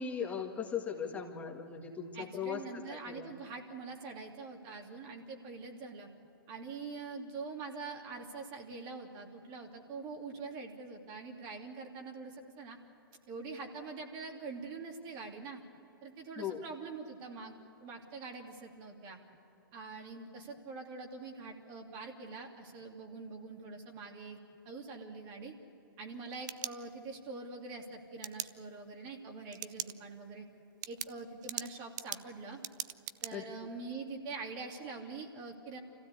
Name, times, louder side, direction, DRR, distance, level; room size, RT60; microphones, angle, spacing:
voice 1, 0.0-2.6 2.9-3.3 16.4-16.6 33.3-33.4, left 7 dB, 10° left, 0 dB, 2.0 m, -38 dB
voice 2, 2.1-6.1 6.5-12.8 13.3-15.6 16.0-19.2 19.7-24.4 24.6-25.5 26.0-30.5 30.9-32.6 33.2-35.8, right 4 dB, 35° right, 2 dB, 2.8 m, -44 dB
sound 1, 26.1-27.3 28.2-28.5 29.5-29.9 30.3-30.4 30.8-33.3, right 12 dB, 55° right, 0.7 m, -40 dB
25.5 x 15.5 x 8.4 m, 2.8 s
hypercardioid pair, 120°, 12 cm